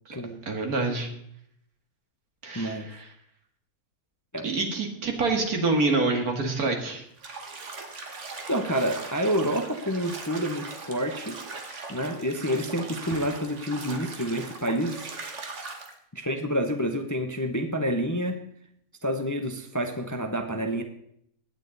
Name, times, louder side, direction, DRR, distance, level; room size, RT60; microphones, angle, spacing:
voice 1, 0.5-1.1 2.4-3.0 4.4-7.0, right 3 dB, 75° right, 3 dB, 2.4 m, -26 dB
voice 2, 2.5-2.9 4.3-4.5 8.5-11.4 11.9-15.1 16.1-18.4 19.0-20.8, equal, 15° left, 6 dB, 0.7 m, -28 dB
Bathtub (filling or washing), 7.2-15.9, right 3 dB, 50° right, 1.6 m, -40 dB
16.5 x 10.0 x 4.0 m, 0.70 s
omnidirectional pair, 1.6 m